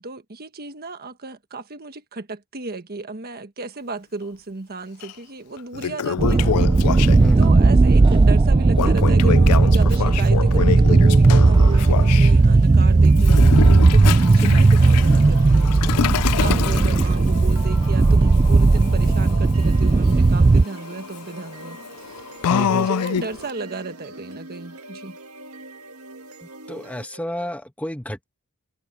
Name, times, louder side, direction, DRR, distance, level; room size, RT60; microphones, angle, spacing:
voice 1, 0.0-13.6 13.9-25.2, right 3 dB, 45° right, 1.5 m, -34 dB
Toilet flush, 5.0-5.1 5.6-7.5 8.7-12.3 13.2-23.5, left 8 dB, 85° left, 0.4 m, -27 dB
sound 1, 6.2-20.6, right 3 dB, 20° right, 0.3 m, -15 dB
voice 2, 7.2-7.7 16.5-16.8 22.5-22.9 26.7-28.3, equal, 5° left, 1.2 m, -30 dB
sound 2, 11.5-27.5, right 3 dB, 70° right, 1.8 m, -42 dB
head